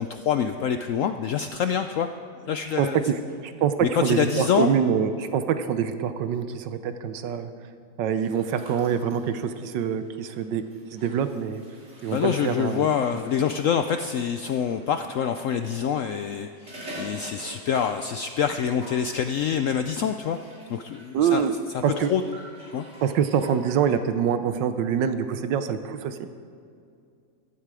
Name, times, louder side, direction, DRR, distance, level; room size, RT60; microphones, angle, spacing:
voice 1, 0.0-2.1 2.4-3.0 3.8-4.7 12.1-20.4 20.7-21.4 21.7-22.2 22.7-22.8, left 8 dB, 80° left, 8 dB, 0.7 m, -26 dB
voice 2, 2.8-3.7 4.0-7.5 8.0-10.6 10.9-11.6 12.0-12.9 21.1-21.5 21.8-22.1 23.0-26.2, right 8 dB, 85° right, 10 dB, 1.4 m, -25 dB
sound 1, 8.2-14.8 15.9-18.3 18.5-19.1 20.0-23.9, equal, 35° right, 3.6 m, -46 dB
15.0 x 12.5 x 4.9 m, 2.4 s
omnidirectional pair, 1.9 m